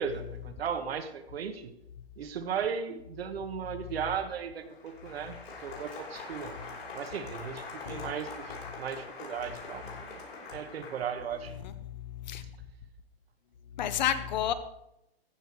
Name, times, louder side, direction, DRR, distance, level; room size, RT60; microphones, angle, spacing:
voice 1, 0.0-1.7 2.2-6.5 6.9-8.4 8.8-10.2 10.5-11.5, right 7 dB, 70° right, 7 dB, 1.5 m, -36 dB
Applause, 4.6-11.5, left 4 dB, 70° left, 5.3 m, -44 dB
voice 2, 13.8-14.5, left 10 dB, 45° left, 12 dB, 0.9 m, -30 dB
14.5 x 7.0 x 4.6 m, 0.84 s
hypercardioid pair, 160°, 31 cm